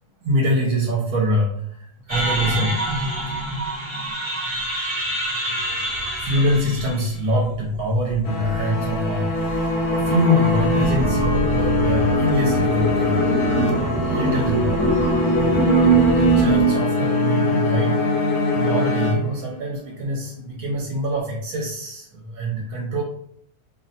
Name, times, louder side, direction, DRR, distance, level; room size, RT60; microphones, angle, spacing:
voice 1, 0.2-2.8 3.3-3.4 5.8-5.9 6.2-15.3 15.8-23.0, equal, 75° right, -2 dB, 1.1 m, -25 dB
sound 1, 2.1-16.7, right 3 dB, 25° right, 0.7 m, -24 dB
sound 2, 8.2-19.7, left 3 dB, 85° left, 1.1 m, -22 dB
2.7 x 2.0 x 2.6 m, 0.70 s
omnidirectional pair, 1.6 m